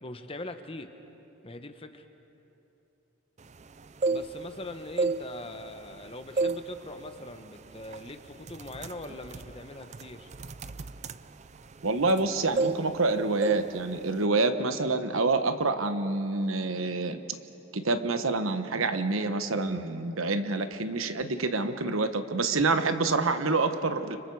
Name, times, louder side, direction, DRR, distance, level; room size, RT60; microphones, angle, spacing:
voice 1, 0.0-0.9 1.4-2.0 4.1-10.3, left 2 dB, 25° left, 7 dB, 1.1 m, -42 dB
sound 1, 3.8-4.6 4.9-6.0 6.4-6.7 7.1-7.3 7.9-8.1 8.4-12.3 12.6-13.1 13.4-13.7 14.0-14.2, right 3 dB, 35° right, 0.5 m, -30 dB
voice 2, 11.8-17.2 17.7-24.2, right 3 dB, 90° right, 9 dB, 1.2 m, -27 dB
29.5 x 26.0 x 4.8 m, 3.0 s
head